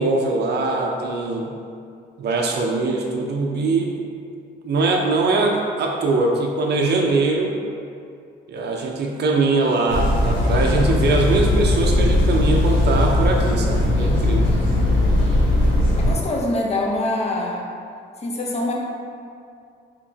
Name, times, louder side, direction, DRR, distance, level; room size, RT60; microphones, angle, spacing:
voice 1, 0.0-1.5 2.2-3.9 4.6-7.5 8.5-14.5, right 3 dB, 60° right, 0 dB, 0.6 m, -21 dB
sound 1, 9.9-16.1, left 1 dB, 70° left, 0.9 m, -19 dB
voice 2, 16.0-17.7 18.2-18.7, left 1 dB, 35° left, -1 dB, 0.7 m, -24 dB
4.3 x 2.8 x 2.7 m, 2.4 s
cardioid pair, 90°, 20 cm